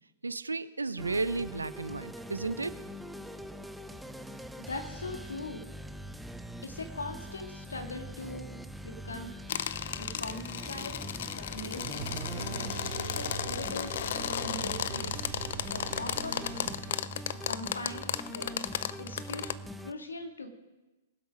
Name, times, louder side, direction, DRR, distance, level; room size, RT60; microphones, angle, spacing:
voice 1, 0.2-2.8, right 3 dB, 90° right, 15 dB, 0.7 m, -33 dB
sound 1, 1.0-19.9, equal, 5° right, 0.6 m, -43 dB
voice 2, 4.6-5.7 6.6-8.5 8.8-9.3 10.0-13.9 14.4-15.3 15.7-16.5 17.5-18.6 19.0-20.5, left 2 dB, 85° left, 5 dB, 2.1 m, -41 dB
sound 2, 9.5-19.5, left 10 dB, 60° left, 0.5 m, -35 dB
sound 3, 11.8-17.3, right 8 dB, 60° right, 2.0 m, -41 dB
22.0 x 7.9 x 5.3 m, 1.1 s
hypercardioid pair, 115°, 0 cm